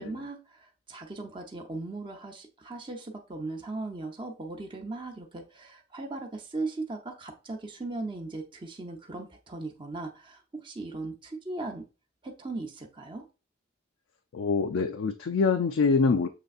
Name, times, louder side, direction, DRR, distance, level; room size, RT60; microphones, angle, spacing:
voice 1, 0.0-11.8 12.2-13.3, right 2 dB, 25° right, 0.7 m, -38 dB
voice 2, 14.3-16.3, left 4 dB, 70° left, 0.4 m, -25 dB
6.7 x 3.3 x 2.4 m
head